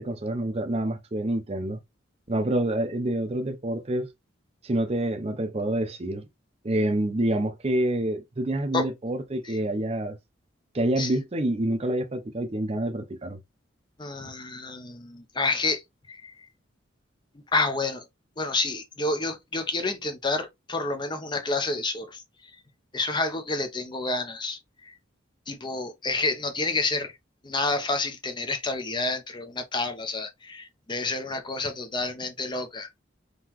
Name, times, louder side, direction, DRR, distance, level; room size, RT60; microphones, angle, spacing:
voice 1, 0.0-1.8 2.3-4.1 4.6-6.3 6.6-10.2 10.7-13.4, right 1 dB, 30° right, 0.5 m, -27 dB
voice 2, 14.0-15.8 16.1-16.3 17.5-18.0 18.4-22.2 22.9-24.9 25.5-27.1 27.4-32.9, left 3 dB, 25° left, 0.5 m, -29 dB
3.8 x 2.8 x 2.9 m
head